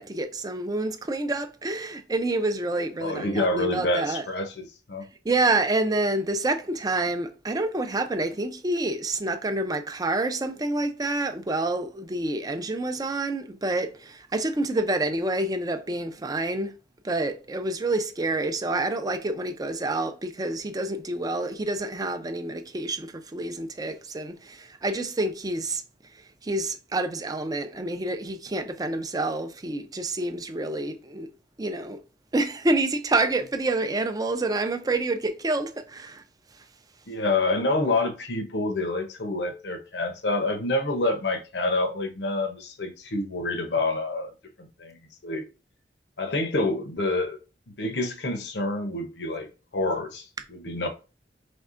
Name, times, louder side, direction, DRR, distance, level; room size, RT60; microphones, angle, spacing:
voice 1, 0.0-4.2 5.2-16.7 17.0-25.8 26.4-31.3 31.6-32.0 32.3-36.2, right 2 dB, 20° right, 0.5 m, -28 dB
voice 2, 3.0-5.0 37.1-44.3 44.6-45.0 45.2-45.4 46.2-47.4 47.8-50.9, left 2 dB, 75° left, 0.8 m, -27 dB
5.3 x 3.4 x 2.5 m
head